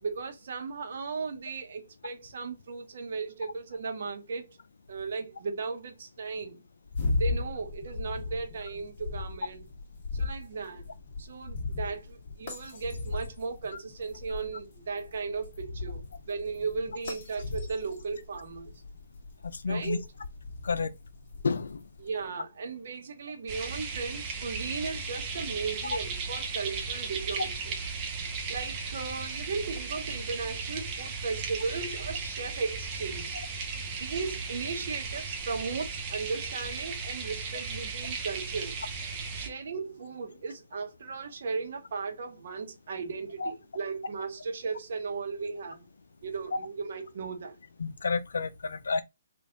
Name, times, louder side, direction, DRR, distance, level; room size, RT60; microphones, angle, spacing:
voice 1, 0.0-4.6 4.9-6.6 7.1-9.6 10.1-10.9 11.2-18.7 19.7-20.0 22.0-27.7 28.5-33.4 33.9-38.9 39.3-45.9 46.2-47.6, right 4 dB, 55° right, 1.0 m, -36 dB
sound 1, 6.9-22.0, left 3 dB, 35° left, 1.6 m, -37 dB
voice 2, 19.6-20.0 20.6-20.9 21.4-21.8 43.4-43.5 47.8-49.0, left 4 dB, 80° left, 0.5 m, -30 dB
sound 2, 23.5-39.5, right 4 dB, 25° right, 0.7 m, -36 dB
3.5 x 2.5 x 3.8 m
hypercardioid pair, 155°, 0 cm